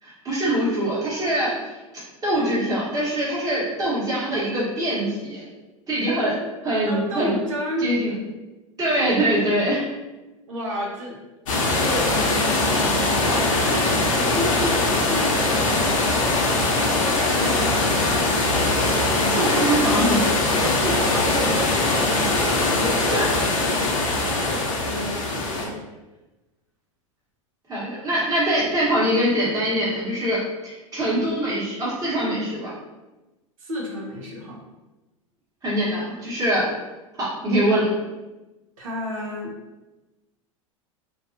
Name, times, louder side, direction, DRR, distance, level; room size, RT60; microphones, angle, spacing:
voice 1, 0.0-1.8 2.2-5.4 5.9-6.3 6.6-7.3 7.8-8.1 8.8-9.8 13.7-13.8 18.9-19.1 19.3-20.4 23.1-23.2 27.7-32.7 35.6-36.7 37.2-37.9, right 1 dB, 20° right, -8 dB, 1.2 m, -23 dB
voice 2, 6.9-7.9 10.5-11.2 11.6-12.3 13.2-18.1 20.6-22.2 22.7-25.8 33.6-34.6 38.8-39.5, equal, 80° right, -2 dB, 0.8 m, -32 dB
sound 1, 11.5-25.6, left 2 dB, 75° left, 0.7 m, -21 dB
2.5 x 2.3 x 2.6 m, 1.1 s
hypercardioid pair, 90°, 17 cm